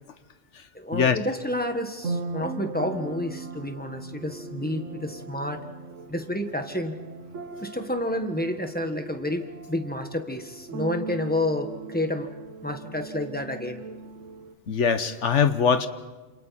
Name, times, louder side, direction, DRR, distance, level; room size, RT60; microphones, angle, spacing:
voice 1, 0.7-5.6 6.1-6.9 7.6-12.3 12.6-13.8, left 1 dB, 10° left, 5 dB, 1.5 m, -30 dB
sound 1, 2.0-14.5, right 3 dB, 90° right, 1.5 m, -39 dB
voice 2, 14.7-15.9, left 6 dB, 75° left, 10 dB, 1.5 m, -22 dB
28.5 x 27.5 x 4.3 m, 1.2 s
omnidirectional pair, 1.2 m